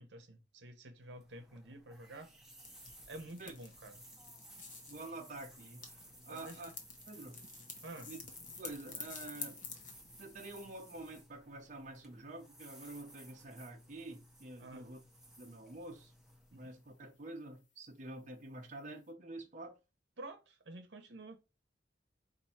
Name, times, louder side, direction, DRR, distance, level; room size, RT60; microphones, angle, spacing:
voice 1, 0.0-2.3 3.1-4.0 6.3-6.6 7.8-8.1 14.6-14.9 16.5-16.6 20.2-21.4, right 2 dB, 75° right, 0.9 m, -50 dB
sound 1, 1.0-17.2, right 1 dB, ahead, 0.8 m, -58 dB
sound 2, 2.6-11.2, left 5 dB, 45° left, 1.0 m, -51 dB
voice 2, 4.9-5.9 6.3-6.7 7.1-7.4 8.1-8.2 8.6-9.6 10.2-15.0 15.4-16.1 16.5-19.8, right 2 dB, 45° right, 0.7 m, -48 dB
4.5 x 2.6 x 4.2 m
head